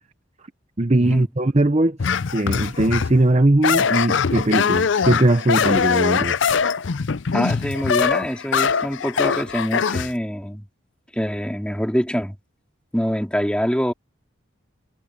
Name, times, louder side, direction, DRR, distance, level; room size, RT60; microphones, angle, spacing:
voice 1, 0.8-2.0 2.3-6.4, right 1 dB, 30° right, 0.8 m, -19 dB
sound 1, 2.0-3.2 3.6-10.1, left 6 dB, 65° left, 0.5 m, -22 dB
voice 2, 7.3-10.6 11.1-12.3 12.9-13.9, equal, 5° left, 3.0 m, -24 dB
head